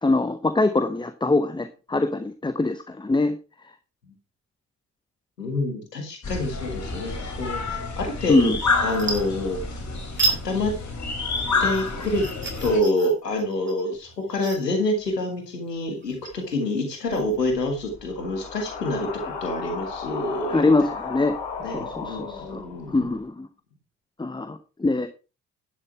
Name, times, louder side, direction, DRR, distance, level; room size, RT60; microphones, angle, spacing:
voice 1, 0.0-3.4 8.3-8.6 20.5-21.4 21.6-23.5 24.2-25.1, left 2 dB, 10° left, 11 dB, 0.9 m, -23 dB
voice 2, 5.4-8.5 8.8-9.8 10.3-10.7 11.6-12.2 12.6-20.9 21.6-23.1, left 1 dB, 90° left, 4 dB, 1.8 m, -27 dB
sound 1, 6.2-12.8, left 3 dB, 35° left, 3.6 m, -28 dB
sound 2, 8.3-8.5 8.8-9.8 10.2-10.4 10.8-17.3, right 2 dB, 25° right, 3.9 m, -32 dB
sound 3, 17.1-23.2, left 5 dB, 55° left, 3.4 m, -35 dB
11.0 x 7.4 x 4.5 m, 0.32 s
figure-of-eight pair, 45°, 47 cm